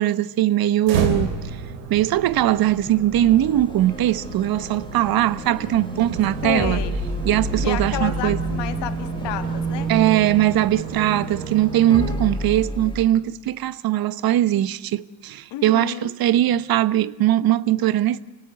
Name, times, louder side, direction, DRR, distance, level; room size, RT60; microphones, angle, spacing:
voice 1, 0.0-1.4 1.9-6.8 7.2-8.4 9.9-18.2, right 13 dB, 45° right, 1.1 m, -20 dB
sound 1, 0.8-12.8, right 4 dB, 80° right, 3.8 m, -30 dB
sound 2, 3.1-13.1, left 1 dB, 10° left, 2.3 m, -34 dB
voice 2, 6.4-6.9 7.6-9.9 15.5-16.1, left 12 dB, 55° left, 2.4 m, -30 dB
30.0 x 17.5 x 8.2 m
hypercardioid pair, 70°, 49 cm